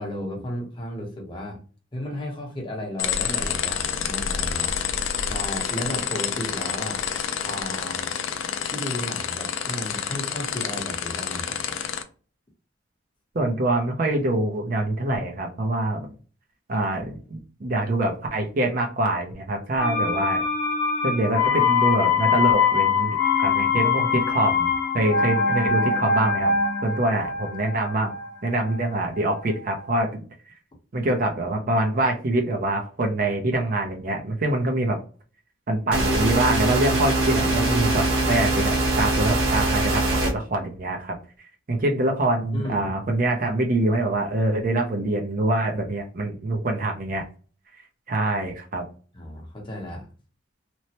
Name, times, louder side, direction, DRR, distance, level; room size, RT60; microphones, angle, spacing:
voice 1, 0.0-1.6 1.9-4.8 5.2-7.0 7.4-8.1 8.6-11.8 42.5-42.9 49.1-50.1, left 1 dB, 25° left, -1 dB, 0.8 m, -34 dB
sound 1, 3.0-12.0, left 8 dB, 70° left, 0.4 m, -28 dB
voice 2, 13.3-16.1 16.7-20.5 21.0-26.5 26.8-28.1 28.4-30.2 30.9-35.0 35.7-41.2 41.7-47.2 48.1-48.8, right 2 dB, 45° right, 3 dB, 0.5 m, -25 dB
sound 2, 19.8-29.5 29.8-29.9, left 5 dB, 55° left, 0.9 m, -23 dB
sound 3, 35.9-40.3, right 2 dB, 85° right, 1.0 m, -22 dB
3.0 x 2.0 x 2.8 m, 0.38 s
head